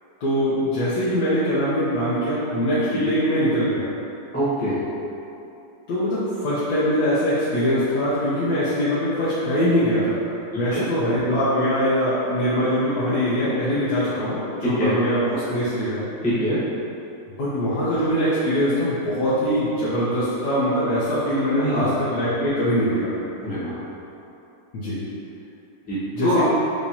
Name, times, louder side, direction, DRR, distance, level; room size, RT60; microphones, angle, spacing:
voice 1, 0.2-3.9 5.9-10.2 10.5-16.1 17.4-23.1 24.7-25.0 26.1-26.4, equal, 75° left, -11 dB, 1.4 m, -22 dB
voice 2, 4.3-4.8 10.7-10.8 14.8-14.9 16.2-16.6 21.6-21.9 23.4-23.7 25.9-26.4, equal, 5° left, -11 dB, 0.8 m, -24 dB
4.8 x 3.6 x 2.7 m, 2.8 s
omnidirectional pair, 1.8 m